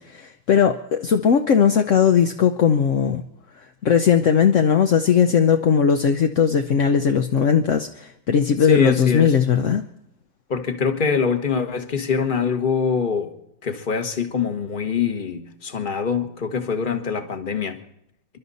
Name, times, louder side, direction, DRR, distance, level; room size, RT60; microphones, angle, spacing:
voice 1, 0.0-3.2 3.8-9.9, left 7 dB, 60° left, 0.8 m, -18 dB
voice 2, 8.6-9.4 10.5-17.8, left 6 dB, 30° left, 1.2 m, -24 dB
28.0 x 12.0 x 4.1 m
omnidirectional pair, 2.0 m